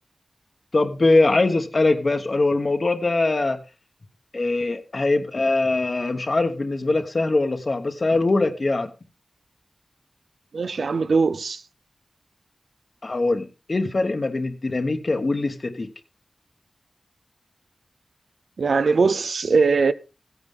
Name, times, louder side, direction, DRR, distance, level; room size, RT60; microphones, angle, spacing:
voice 1, 0.7-3.6 4.3-8.9 13.0-15.9, left 2 dB, 50° left, 1.1 m, -22 dB
voice 2, 10.5-11.6 18.6-19.9, right 4 dB, 80° right, 0.6 m, -20 dB
15.5 x 9.5 x 3.6 m
wide cardioid pair, 75°, 0 cm